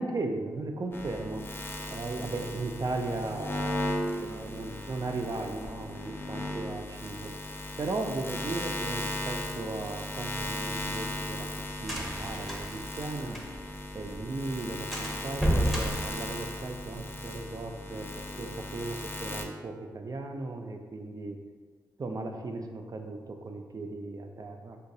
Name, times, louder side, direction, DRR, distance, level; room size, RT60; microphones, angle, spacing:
voice 1, 0.0-1.4 1.9-7.4 7.8-13.4 13.9-21.4 22.0-24.8, right 2 dB, 45° right, 3 dB, 0.4 m, -36 dB
sound 1, 0.9-19.4, left 1 dB, 25° left, 0.4 m, -37 dB
sound 2, 10.4-13.8 14.1-14.2 14.5-14.6 14.9-17.0, equal, ahead, 0.7 m, -32 dB
3.9 x 2.3 x 2.6 m, 1.5 s
cardioid pair, 45°, 9 cm